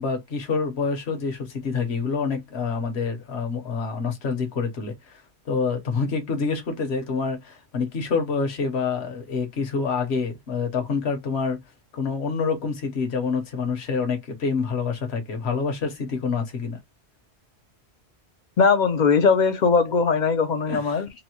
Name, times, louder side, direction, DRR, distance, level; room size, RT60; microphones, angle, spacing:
voice 1, 0.0-5.2 5.5-11.6 11.9-16.8 20.7-21.0, left 5 dB, 75° left, 1.2 m, -27 dB
voice 2, 18.6-21.2, left 5 dB, 55° left, 0.5 m, -20 dB
3.9 x 2.1 x 2.8 m
omnidirectional pair, 1.1 m